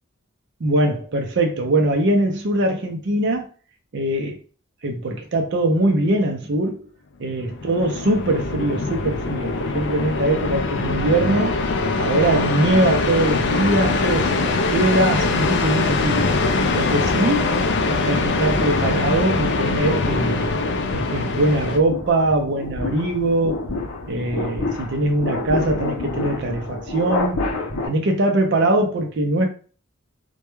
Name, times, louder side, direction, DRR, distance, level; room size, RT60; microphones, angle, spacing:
voice 1, 0.6-3.5 3.9-4.4 4.8-6.8 7.2-11.6 12.0-16.2 16.7-17.5 18.0-20.6 20.9-23.6 24.1-27.4 27.9-29.5, right 1 dB, 55° right, 0.5 m, -22 dB
sound 1, 7.4-21.8, left 3 dB, 55° left, 0.3 m, -22 dB
sound 2, 13.8-15.3 15.8-27.9, left 2 dB, 90° left, 0.6 m, -30 dB
2.2 x 2.2 x 2.9 m
head